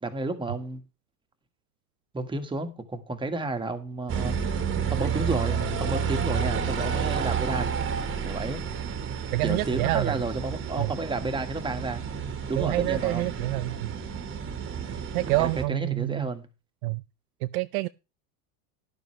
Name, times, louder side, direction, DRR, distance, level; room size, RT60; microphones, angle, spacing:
voice 1, 0.0-0.8 2.1-4.4 4.9-7.7 8.2-8.6 9.4-12.0 12.5-13.3 15.4-16.5, right 2 dB, 10° right, 1.7 m, -31 dB
sound 1, 4.1-15.6, right 6 dB, 25° right, 1.7 m, -30 dB
voice 2, 9.3-10.2 10.8-10.9 12.6-13.9 15.1-16.3 16.8-17.0 17.4-17.9, right 19 dB, 60° right, 0.6 m, -27 dB
12.5 x 11.0 x 3.3 m
supercardioid pair, 115°, 47 cm